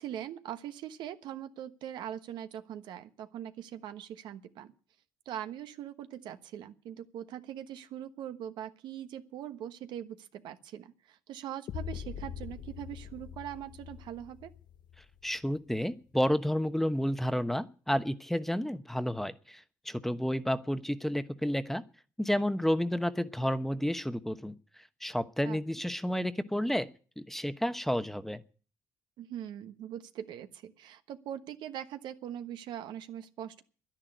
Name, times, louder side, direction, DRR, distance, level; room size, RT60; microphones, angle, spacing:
voice 1, 0.0-4.7 5.2-14.5 25.4-25.9 29.2-33.6, right 10 dB, 75° right, 9 dB, 1.2 m, -42 dB
sound 1, 11.7-15.7, left 9 dB, 65° left, 0.7 m, -43 dB
voice 2, 15.2-21.8 22.2-24.5 25.0-26.9 27.2-28.4, equal, 5° left, 11 dB, 1.0 m, -31 dB
10.5 x 10.5 x 9.3 m, 0.40 s
supercardioid pair, 70°, 8 cm